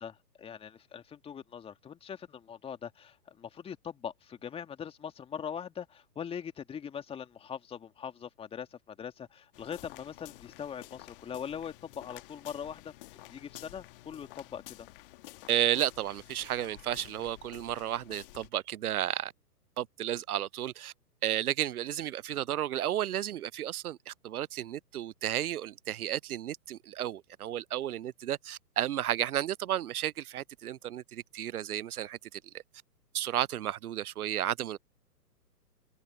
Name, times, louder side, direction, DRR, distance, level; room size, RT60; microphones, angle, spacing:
voice 1, 0.0-12.9 13.3-14.9, left 8 dB, 10° left, 2.2 m, -41 dB
sound 1, 9.5-18.5, left 19 dB, 35° left, 1.7 m, -51 dB
voice 2, 15.5-19.3 19.8-20.9 21.2-32.4 33.1-34.8, right 12 dB, 65° right, 0.5 m, -33 dB
open air
figure-of-eight pair, 125°, 49 cm